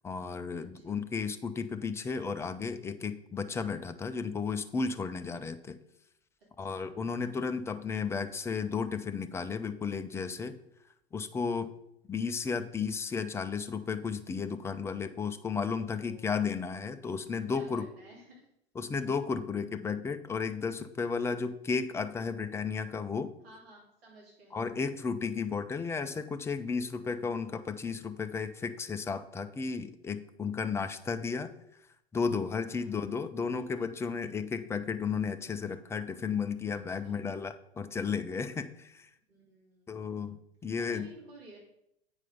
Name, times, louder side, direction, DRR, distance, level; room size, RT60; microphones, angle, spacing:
voice 1, 0.0-5.8 6.6-10.5 11.1-11.7 12.1-17.9 18.8-23.3 24.5-31.5 32.1-39.1 39.9-41.1, left 5 dB, 10° left, 9 dB, 0.4 m, -33 dB
voice 2, 6.6-6.9 15.6-16.3 17.5-18.3 23.4-24.6 32.7-33.0 37.0-37.1 39.3-39.9 40.8-41.6, right 2 dB, 65° right, -3 dB, 3.4 m, -55 dB
8.8 x 4.9 x 5.4 m, 0.79 s
figure-of-eight pair, 95°, 31 cm